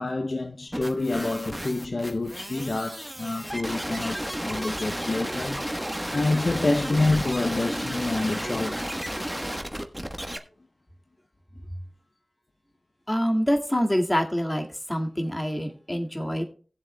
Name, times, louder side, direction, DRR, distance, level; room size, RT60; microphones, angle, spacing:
voice 1, 0.0-5.6 6.1-9.0, left 2 dB, 60° left, 0.7 m, -27 dB
sound 1, 0.7-10.4, equal, 5° right, 1.2 m, -32 dB
voice 2, 13.1-16.4, equal, 20° left, 2.0 m, -26 dB
19.0 x 7.5 x 2.2 m
wide cardioid pair, 65°, 0 cm